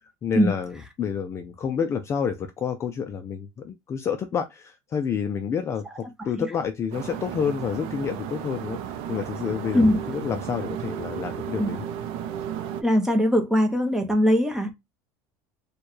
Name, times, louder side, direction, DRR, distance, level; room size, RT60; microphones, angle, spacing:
voice 1, 0.2-11.9, left 7 dB, 30° left, 0.4 m, -29 dB
sound 1, 6.9-12.8, right 9 dB, 65° right, 0.5 m, -34 dB
voice 2, 12.8-14.7, equal, 5° right, 0.8 m, -20 dB
4.4 x 2.3 x 3.0 m
cardioid pair, 135°, 10 cm